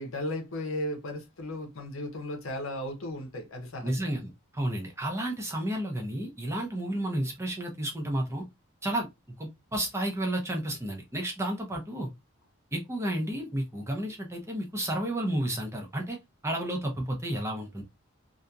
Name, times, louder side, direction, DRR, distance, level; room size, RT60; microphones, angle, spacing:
voice 1, 0.0-4.1, left 1 dB, 70° left, 0.8 m, -35 dB
voice 2, 3.8-8.4 8.8-9.1 9.4-12.1 12.7-16.2 16.4-17.8, right 1 dB, 15° right, 0.6 m, -31 dB
2.7 x 2.5 x 2.3 m
head